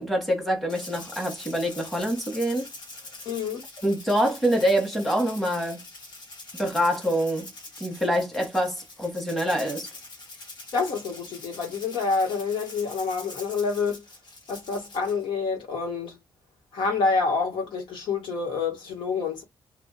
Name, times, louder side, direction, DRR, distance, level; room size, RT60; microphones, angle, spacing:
voice 1, 0.0-2.7 3.8-5.8 6.5-7.5 7.8-9.9, equal, ahead, 1.2 m, -25 dB
Rattle (instrument), 0.7-15.2, left 2 dB, 70° left, 1.4 m, -44 dB
voice 2, 3.3-3.6 10.7-14.0 14.5-16.2 16.7-19.4, left 4 dB, 85° left, 1.6 m, -27 dB
2.7 x 2.5 x 4.0 m
cardioid pair, 140°, 8 cm